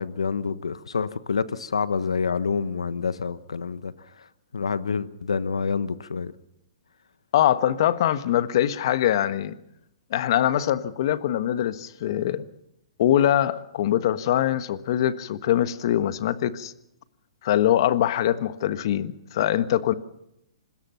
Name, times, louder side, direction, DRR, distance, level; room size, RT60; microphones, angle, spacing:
voice 1, 0.0-4.3 4.5-6.3, left 5 dB, 85° left, 14 dB, 1.2 m, -27 dB
voice 2, 7.3-9.5 10.1-12.5 13.0-16.7 17.4-19.9, left 11 dB, 55° left, 12 dB, 1.4 m, -23 dB
26.0 x 21.0 x 5.8 m, 0.81 s
hypercardioid pair, 130°, 3 cm